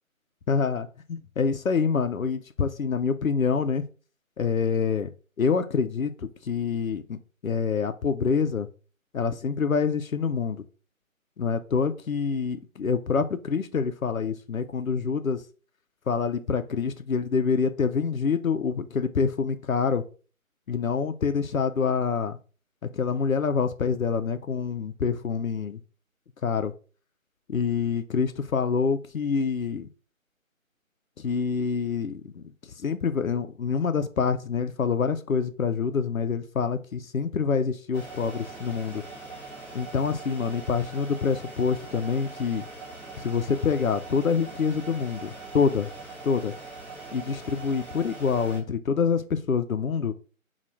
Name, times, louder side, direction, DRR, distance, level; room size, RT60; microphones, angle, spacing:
voice 1, 0.5-3.8 4.4-5.1 5.4-7.2 7.4-8.7 9.1-10.6 11.4-15.4 16.1-20.0 20.7-22.4 22.8-25.8 26.4-26.7 27.5-29.9 31.2-32.4 32.8-39.0 39.7-42.6 43.2-45.9 46.2-46.5 47.1-50.1, left 5 dB, 75° left, 0.6 m, -26 dB
sound 1, 37.9-48.6, right 3 dB, 15° right, 1.2 m, -42 dB
4.2 x 2.4 x 3.3 m
figure-of-eight pair, 160°, 42 cm